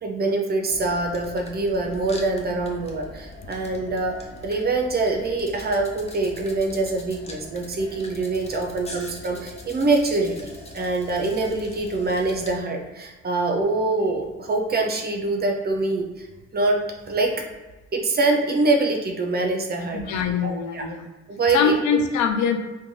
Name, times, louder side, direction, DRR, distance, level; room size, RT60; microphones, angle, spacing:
voice 1, 0.0-4.1 4.4-16.3 16.5-16.8 17.1-17.4 17.9-20.9 21.3-21.7, right 2 dB, 35° right, 2 dB, 0.5 m, -24 dB
sound 1, 0.7-12.6, left 1 dB, 20° left, 0.5 m, -42 dB
voice 2, 19.9-21.1 21.5-22.6, left 6 dB, 70° left, 6 dB, 0.5 m, -23 dB
2.5 x 2.2 x 3.1 m, 1.2 s
cardioid pair, 90°, 30 cm